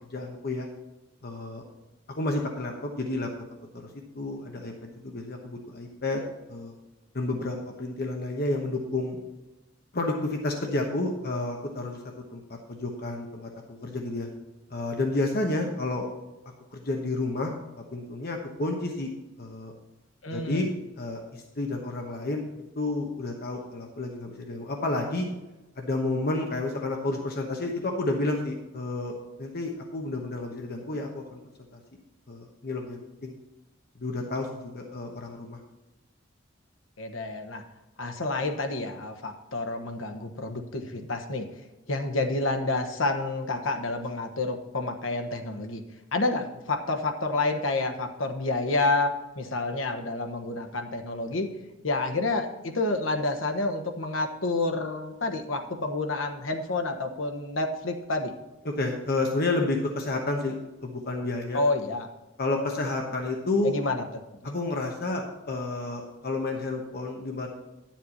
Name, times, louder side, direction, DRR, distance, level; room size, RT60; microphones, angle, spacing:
voice 1, 0.1-0.7 1.2-1.6 2.1-3.3 4.1-4.7 5.0-6.2 6.5-6.7 7.1-9.2 9.9-12.0 12.3-14.3 14.7-16.1 16.7-17.5 17.9-19.1 19.4-19.7 20.3-20.7 21.0-22.5 22.8-25.3 25.8-29.1 29.4-31.4 32.3-33.3 34.0-35.6 58.6-60.6 60.8-61.6 62.4-63.7 64.4-67.5, left 2 dB, 55° left, 2 dB, 1.1 m, -30 dB
voice 2, 20.2-20.6 37.0-37.6 38.0-41.5 41.9-45.8 46.1-51.5 51.8-58.3 61.5-62.1 63.6-64.0 64.4-64.6, left 2 dB, 90° left, 6 dB, 1.2 m, -29 dB
11.0 x 7.5 x 4.2 m, 1.1 s
head